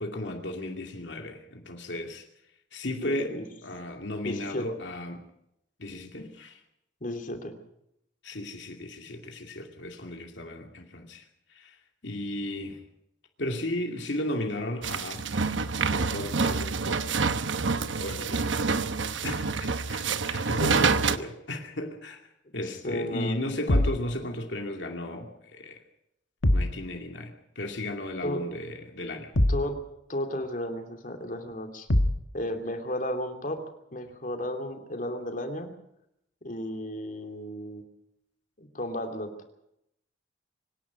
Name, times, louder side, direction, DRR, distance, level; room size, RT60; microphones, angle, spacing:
voice 1, 0.0-2.2 2.7-5.2 5.8-6.6 8.2-11.2 11.5-11.8 12.0-12.8 13.4-15.2 15.9-17.1 18.0-18.7 19.2-22.2 22.5-25.8 26.5-29.3, left 1 dB, 70° left, 3 dB, 2.5 m, -35 dB
voice 2, 3.0-3.5 4.2-4.7 7.0-7.5 22.6-23.4 28.2-28.4 29.5-29.8 30.1-31.9 32.3-33.6 33.9-35.7 36.4-37.8 38.6-39.3, left 1 dB, 45° left, 5 dB, 2.8 m, -33 dB
sound 1, 14.8-21.2, right 4 dB, 85° right, 1.0 m, -27 dB
sound 2, 23.7-24.1 26.4-26.8 29.3-29.7 31.9-32.3, left 1 dB, 85° left, 1.6 m, -23 dB
25.0 x 11.0 x 9.5 m, 0.80 s
head